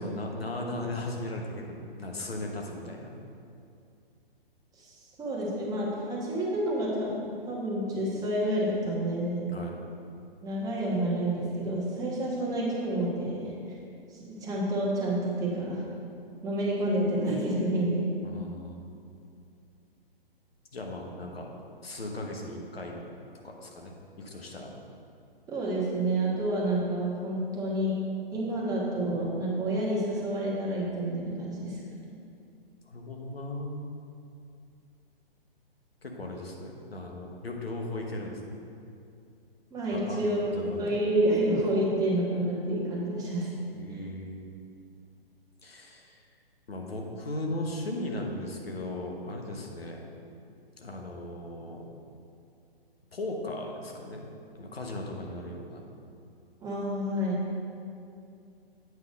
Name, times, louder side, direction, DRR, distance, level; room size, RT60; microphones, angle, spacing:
voice 1, 0.0-3.2 9.5-9.8 18.2-19.0 20.7-21.5 21.8-23.1 23.4-24.7 32.9-33.8 36.0-38.6 39.9-41.0 43.7-44.4 45.6-46.2 46.7-50.0 50.5-51.9 53.1-54.2 54.5-55.8, left 1 dB, 80° left, 0 dB, 1.2 m, -37 dB
voice 2, 5.2-9.6 10.4-13.5 14.1-15.8 16.4-18.2 25.5-27.9 28.3-31.8 39.7-40.4 40.8-43.6 43.9-44.0 56.6-57.5, right 1 dB, 10° right, -5 dB, 1.3 m, -29 dB
8.1 x 3.8 x 5.1 m, 2.5 s
figure-of-eight pair, 125°, 30 cm